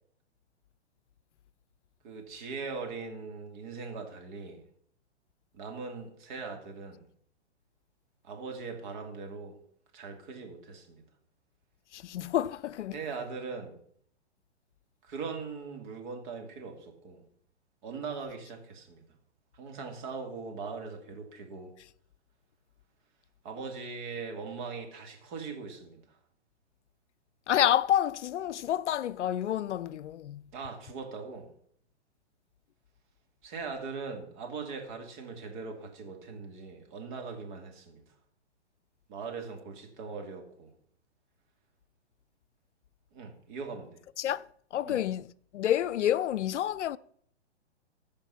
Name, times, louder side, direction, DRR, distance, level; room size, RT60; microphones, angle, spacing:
voice 1, 2.0-4.6 5.5-7.1 8.2-9.6 9.9-11.0 12.9-13.8 15.0-17.2 17.8-19.0 19.5-21.7 23.4-26.0 30.5-31.5 33.4-38.0 39.1-40.7 43.1-44.0 44.8-45.0, right 4 dB, 45° right, 2.7 m, -40 dB
voice 2, 11.9-13.0 27.5-30.4 44.2-47.0, left 11 dB, 85° left, 0.5 m, -29 dB
14.5 x 5.2 x 5.7 m
hypercardioid pair, 140°, 35 cm